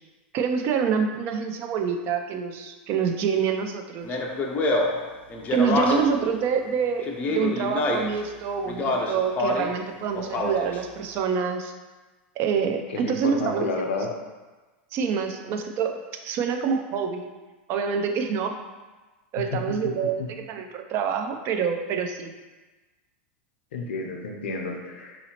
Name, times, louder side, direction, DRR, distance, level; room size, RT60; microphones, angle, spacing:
voice 1, 0.3-4.2 5.5-11.7 12.4-13.9 14.9-17.3 17.7-18.6 19.3-22.3, right 6 dB, 40° right, 5 dB, 0.4 m, -26 dB
Speech, 4.0-6.2 7.0-8.2 8.7-9.8 10.1-10.8, left 2 dB, 25° left, 0.4 m, -26 dB
voice 2, 12.9-14.1 19.5-19.8 20.2-20.3 23.7-25.2, left 3 dB, 85° left, 2 dB, 0.6 m, -31 dB
3.9 x 2.7 x 2.8 m, 1.2 s
supercardioid pair, 130°, 6 cm